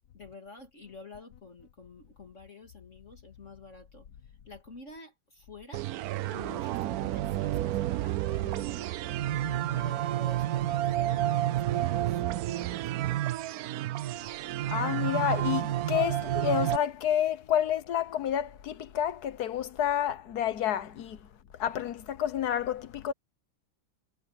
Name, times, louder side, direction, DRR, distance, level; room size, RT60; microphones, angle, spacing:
voice 1, 0.1-5.9 6.3-9.2 9.7-13.0, left 3 dB, 35° left, 2.5 m, -49 dB
sound 1, 5.7-16.8, right 13 dB, 80° right, 0.8 m, -30 dB
voice 2, 14.7-21.3 21.6-23.1, left 10 dB, 60° left, 1.4 m, -29 dB
omnidirectional pair, 2.1 m